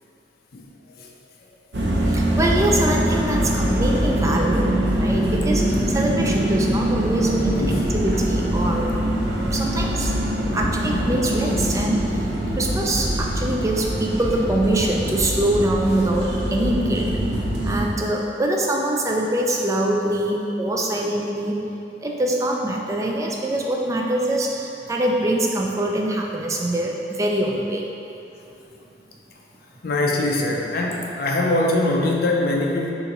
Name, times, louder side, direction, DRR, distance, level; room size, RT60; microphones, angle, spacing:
sound 1, 1.7-17.9, right 1 dB, 70° right, 0.6 m, -23 dB
voice 1, 2.0-7.6 7.9-8.9 9.4-10.1 10.5-17.2 17.6-21.6 22.0-27.9, right 1 dB, 15° right, 0 dB, 0.3 m, -24 dB
voice 2, 29.8-32.9, left 2 dB, 55° left, -1 dB, 0.5 m, -23 dB
6.4 x 2.5 x 2.9 m, 2.8 s
head